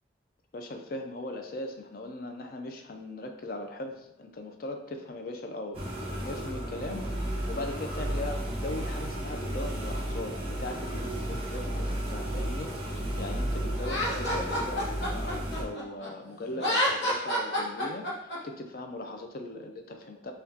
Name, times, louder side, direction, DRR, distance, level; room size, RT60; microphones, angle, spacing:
voice 1, 0.5-20.3, left 2 dB, 50° left, 4 dB, 0.4 m, -39 dB
sound 1, 5.7-15.6, right 1 dB, 30° right, 0.8 m, -33 dB
Laughter, 13.8-16.1 16.5-18.4, equal, 70° left, 0.9 m, -29 dB
5.7 x 2.3 x 2.8 m, 0.82 s
head